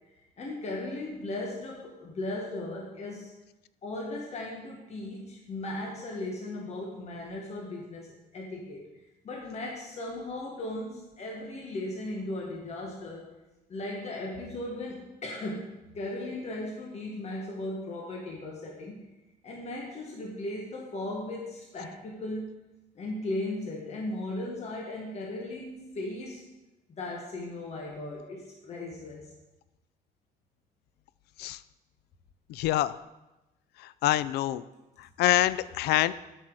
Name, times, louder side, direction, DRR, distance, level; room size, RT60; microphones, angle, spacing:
voice 1, 0.4-3.3 3.8-8.8 9.2-13.2 13.7-19.0 19.4-22.5 23.0-26.4 26.9-29.3, left 1 dB, 40° left, -2 dB, 1.6 m, -37 dB
voice 2, 32.5-32.9 34.0-34.6 35.2-36.1, left 14 dB, 75° left, 17 dB, 0.4 m, -25 dB
8.9 x 6.0 x 4.8 m, 1.0 s
cardioid pair, 110°, 17 cm